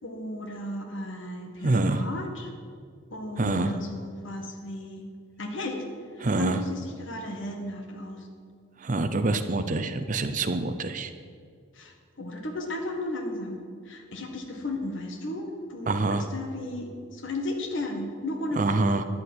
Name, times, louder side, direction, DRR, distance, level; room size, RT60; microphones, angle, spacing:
voice 1, 0.0-2.5 3.1-5.0 5.4-5.8 6.1-8.3 11.7-19.0, left 1 dB, 60° left, 3 dB, 1.7 m, -35 dB
voice 2, 1.6-2.0 3.4-3.7 6.2-6.6 8.8-11.1 15.9-16.3 18.6-19.0, right 2 dB, 35° right, 10 dB, 0.6 m, -26 dB
11.0 x 6.9 x 9.5 m, 2.2 s
head